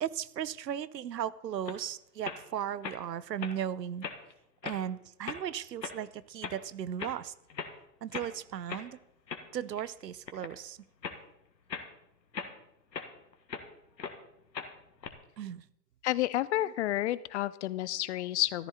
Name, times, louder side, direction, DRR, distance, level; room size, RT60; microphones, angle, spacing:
voice 1, 0.0-4.1 4.6-7.3 8.0-9.0 9.5-10.8 15.4-15.6, right 9 dB, 80° right, 19 dB, 0.8 m, -36 dB
sound 1, 1.7-1.8 2.2-2.4 2.8-3.0 3.4-3.5 4.0-4.3 4.6-4.8 5.2-5.4 5.8-6.0 6.4-6.6 7.0-7.2 7.5-7.8 8.1-8.3 8.7-8.9 9.3-9.9 10.3-10.6 11.0-11.2 11.7-11.9 12.3-13.7 14.0-14.2 14.5-15.1, left 5 dB, 80° left, 1.8 m, -39 dB
voice 2, 16.0-18.7, left 14 dB, 45° left, 18 dB, 0.6 m, -30 dB
14.0 x 13.0 x 4.2 m, 0.79 s
figure-of-eight pair, 110°, 50 cm